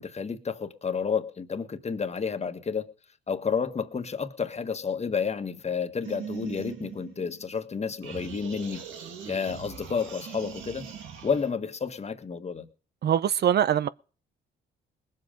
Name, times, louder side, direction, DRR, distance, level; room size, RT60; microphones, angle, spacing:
voice 1, 0.0-2.9 3.3-8.8 9.3-10.9 11.2-12.7, left 6 dB, 35° left, 1.6 m, -30 dB
sound 1, 6.0-7.7 8.0-11.5, right 7 dB, 85° right, 2.2 m, -41 dB
voice 2, 13.0-13.9, right 10 dB, 55° right, 0.6 m, -23 dB
20.0 x 7.7 x 5.2 m
cardioid pair, 90°, 20 cm